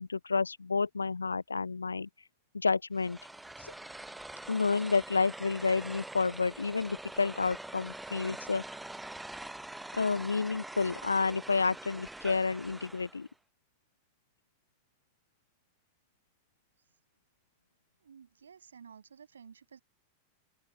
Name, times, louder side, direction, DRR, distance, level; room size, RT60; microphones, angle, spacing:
voice 1, 0.0-2.1 2.5-3.2 3.6-3.7 4.5-8.6 9.9-13.3, left 4 dB, 75° left, 0.5 m, -30 dB
sound 1, 2.9-13.3, right 2 dB, 5° right, 0.8 m, -44 dB
voice 2, 18.0-19.8, right 7 dB, 70° right, 7.3 m, -53 dB
open air
figure-of-eight pair, 90°, 0 cm